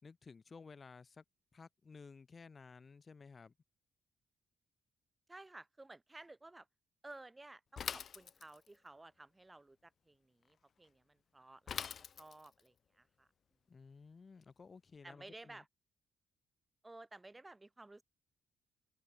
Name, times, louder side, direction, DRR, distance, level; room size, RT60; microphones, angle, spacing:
voice 1, 0.0-1.2 1.5-3.5 13.7-15.6, left 4 dB, 35° left, 3.0 m, -55 dB
voice 2, 5.3-6.7 7.0-13.3 15.0-15.7 16.8-18.0, right 2 dB, 15° right, 6.5 m, -55 dB
Bicycle / Mechanisms, 7.8-8.8 11.7-12.6, left 7 dB, 50° left, 0.7 m, -43 dB
open air
cardioid pair, 90°, 0 cm